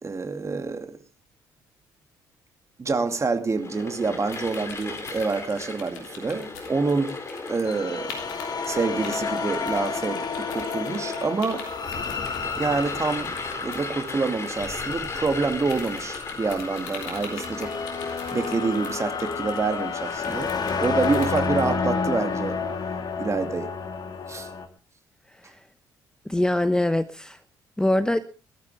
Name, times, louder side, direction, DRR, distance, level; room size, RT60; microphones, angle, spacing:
voice 1, 0.0-1.0 2.8-7.2 7.5-8.2 8.7-11.6 12.6-17.7 18.0-20.5 20.8-22.6 23.2-23.7 24.3-24.5, right 4 dB, 30° right, 2.5 m, -27 dB
sound 1, 3.6-20.9, left 3 dB, 30° left, 3.4 m, -38 dB
sound 2, 4.3-7.8 8.1-8.7 9.0-21.7, left 5 dB, 75° left, 3.3 m, -43 dB
sound 3, 7.7-24.7, left 5 dB, 45° left, 2.1 m, -30 dB
voice 2, 26.3-27.4 27.8-28.2, left 1 dB, 5° left, 0.9 m, -23 dB
21.0 x 13.0 x 3.5 m
figure-of-eight pair, 45°, 10 cm